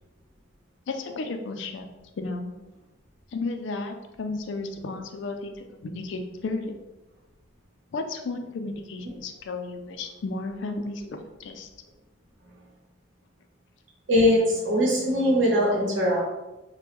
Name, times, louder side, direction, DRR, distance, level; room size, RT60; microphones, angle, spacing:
voice 1, 0.9-1.9 2.2-2.5 3.3-6.8 7.9-11.7, left 3 dB, 70° left, 5 dB, 0.4 m, -33 dB
voice 2, 14.1-16.2, left 1 dB, 80° right, -5 dB, 0.9 m, -21 dB
3.0 x 2.1 x 3.3 m, 1.0 s
head